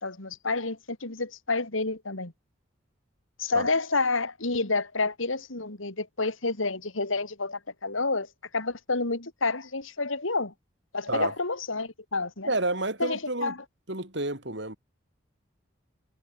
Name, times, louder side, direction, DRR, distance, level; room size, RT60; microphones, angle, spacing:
voice 1, 0.0-2.3 3.4-8.3 8.5-10.5 10.9-12.5 13.0-13.6, left 3 dB, 75° left, 2.8 m, -29 dB
voice 2, 12.4-13.5 13.9-14.8, right 2 dB, 60° right, 5.0 m, -30 dB
head